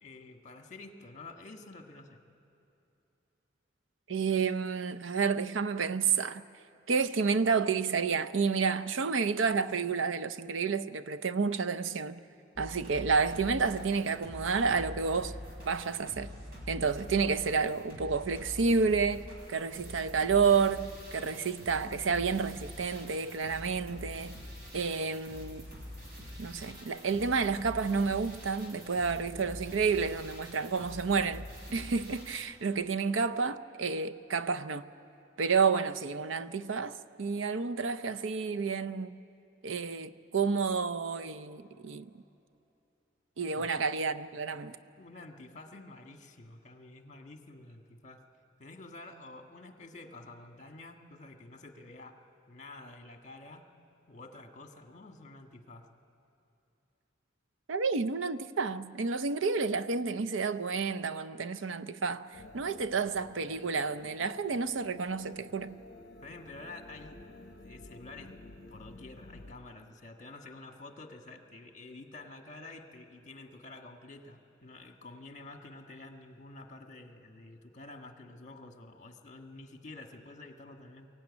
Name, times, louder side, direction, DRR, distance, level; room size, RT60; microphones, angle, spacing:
voice 1, 0.0-2.2 43.5-43.7 44.5-44.7 45.0-48.2 48.6-52.2 52.5-53.6 54.1-55.9 66.2-67.2 67.6-68.4 68.7-81.1, left 2 dB, 40° left, 1.6 m, -49 dB
voice 2, 4.1-6.4 6.9-12.2 12.6-15.3 15.6-16.3 16.7-24.4 24.7-25.7 26.4-34.9 35.4-39.1 39.6-42.1 43.4-44.8 57.7-65.8, right 5 dB, 80° right, 0.6 m, -30 dB
sound 1, 12.5-32.4, left 1 dB, 50° right, 5.8 m, -45 dB
sound 2, 62.3-69.5, left 2 dB, 55° left, 0.9 m, -51 dB
23.0 x 15.5 x 9.7 m
head